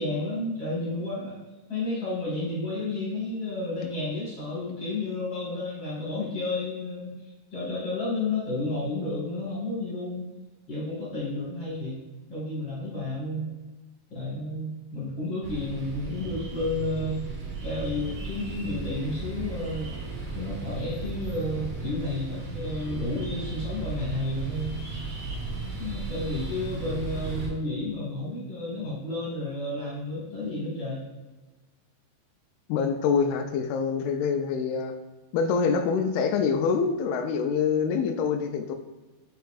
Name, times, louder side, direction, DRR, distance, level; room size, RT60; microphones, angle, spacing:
voice 1, 0.0-1.4 1.7-7.1 7.5-10.3 10.7-12.0 12.3-13.5 14.1-17.2 17.6-19.9 20.3-25.2 25.6-31.1, left 2 dB, 40° left, -6 dB, 1.8 m, -31 dB
sound 1, 15.4-27.5, right 3 dB, 60° right, 2.4 m, -35 dB
voice 2, 32.7-34.9 35.3-38.8, left 6 dB, 80° left, 5 dB, 2.5 m, -25 dB
9.1 x 4.5 x 2.5 m, 1.2 s
omnidirectional pair, 4.5 m